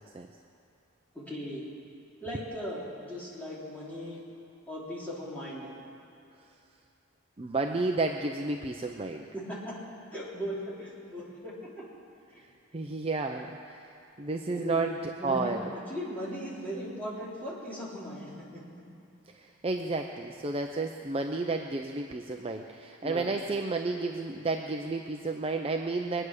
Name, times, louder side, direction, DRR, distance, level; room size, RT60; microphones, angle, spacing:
voice 1, 1.1-1.6 2.2-4.2 4.7-5.7 9.3-9.8 10.1-11.8 12.3-12.4 14.5-14.8 15.2-15.5 15.9-18.6 23.0-23.3, equal, 5° left, -7 dB, 3.5 m, -38 dB
voice 2, 7.4-9.3 12.7-15.0 15.2-15.6 19.3-26.3, right 3 dB, 25° right, 3 dB, 0.5 m, -32 dB
22.5 x 9.9 x 6.5 m, 2.6 s
head